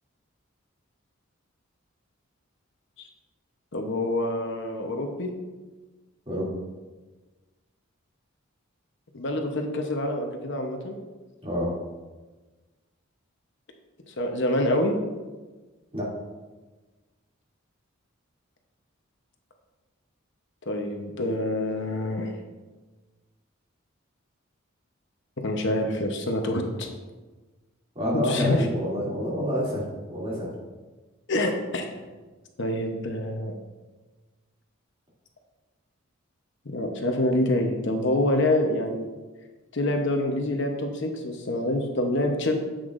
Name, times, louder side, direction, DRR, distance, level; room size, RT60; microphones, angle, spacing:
voice 1, 3.7-5.3 9.1-11.0 14.1-14.9 20.7-22.3 25.4-26.9 28.1-28.7 31.3-31.8 32.6-33.5 36.7-39.1 39.7-42.5, left 1 dB, 60° left, 3 dB, 0.9 m, -26 dB
voice 2, 27.9-30.5, equal, 30° right, -6 dB, 2.6 m, -28 dB
10.0 x 7.9 x 2.6 m, 1.3 s
head